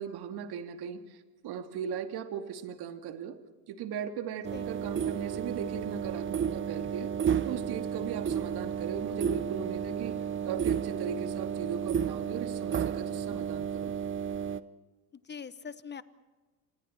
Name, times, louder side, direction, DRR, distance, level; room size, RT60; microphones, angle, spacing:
voice 1, 0.0-3.4 3.7-7.1 7.4-14.1, right 8 dB, 55° right, 6 dB, 2.4 m, -38 dB
sound 1, 4.4-14.6, right 8 dB, 25° right, 0.8 m, -32 dB
voice 2, 15.1-16.0, left 6 dB, 20° left, 14 dB, 1.3 m, -42 dB
29.5 x 26.5 x 4.4 m, 1.2 s
hypercardioid pair, 75°, 47 cm